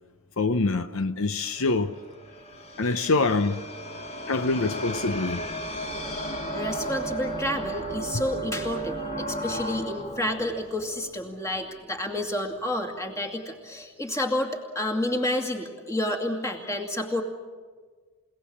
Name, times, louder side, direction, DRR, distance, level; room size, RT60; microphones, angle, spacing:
voice 1, 0.4-2.0 2.8-3.6 4.3-5.4, left 3 dB, 65° left, 0.7 m, -25 dB
sound 1, 1.6-11.9, right 1 dB, 30° left, 2.5 m, -35 dB
voice 2, 6.5-17.2, left 1 dB, 15° left, 2.3 m, -30 dB
29.0 x 18.0 x 8.6 m
head